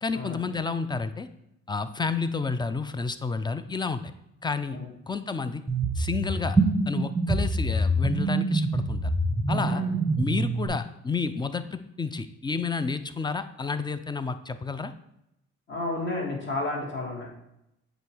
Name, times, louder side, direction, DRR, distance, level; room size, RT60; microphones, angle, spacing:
voice 1, 0.0-1.3 1.7-4.0 4.4-4.8 5.1-5.6 6.0-6.6 6.9-9.1 9.5-9.8 10.2-14.9, left 4 dB, 15° left, 11 dB, 0.4 m, -30 dB
sound 1, 5.7-10.7, right 2 dB, ahead, 1.3 m, -25 dB
voice 2, 9.5-10.0 15.7-17.3, left 2 dB, 40° left, -2 dB, 2.4 m, -32 dB
7.9 x 3.1 x 4.9 m, 0.83 s
cardioid pair, 90°, 30 cm